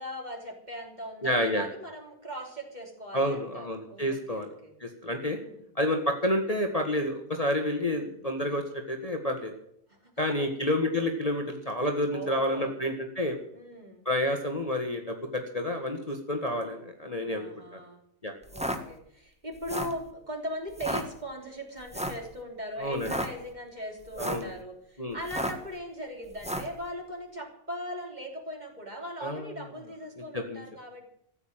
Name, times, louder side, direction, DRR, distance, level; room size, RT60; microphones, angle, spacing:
voice 1, 0.0-4.7 5.3-5.6 7.8-8.2 9.9-10.1 10.4-10.5 10.8-11.1 12.1-12.8 13.5-14.0 17.2-18.0 18.5-31.1, equal, 30° right, 1 dB, 3.5 m, -40 dB
voice 2, 1.2-1.7 3.1-4.5 4.8-5.4 5.7-9.5 10.2-13.4 14.0-17.8 18.2-18.3 22.8-23.1 24.2-24.5 25.0-25.2 29.2-29.5 30.3-30.6, left 1 dB, 25° left, 3 dB, 1.6 m, -29 dB
sound 1, 18.4-18.8 19.5-20.0 20.7-21.0 21.9-22.2 22.9-23.3 24.0-24.5 25.2-25.7 26.4-26.7, equal, 5° right, 1.4 m, -32 dB
14.5 x 8.9 x 8.9 m, 0.73 s
omnidirectional pair, 1.5 m